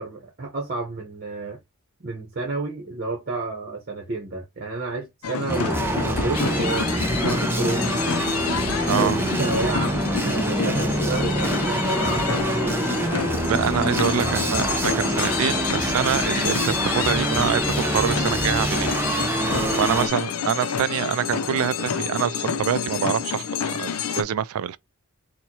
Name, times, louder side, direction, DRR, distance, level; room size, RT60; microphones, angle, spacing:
voice 1, 0.0-1.6 2.0-7.9 9.0-12.9 19.5-19.8, right 3 dB, 45° right, 0.9 m, -30 dB
sound 1, 5.2-24.2, left 6 dB, 80° left, 0.5 m, -28 dB
sound 2, 5.5-20.1, right 1 dB, 10° right, 0.5 m, -25 dB
voice 2, 8.9-9.2 13.4-18.9 19.8-24.8, right 9 dB, 75° right, 0.3 m, -25 dB
4.1 x 2.2 x 2.8 m
head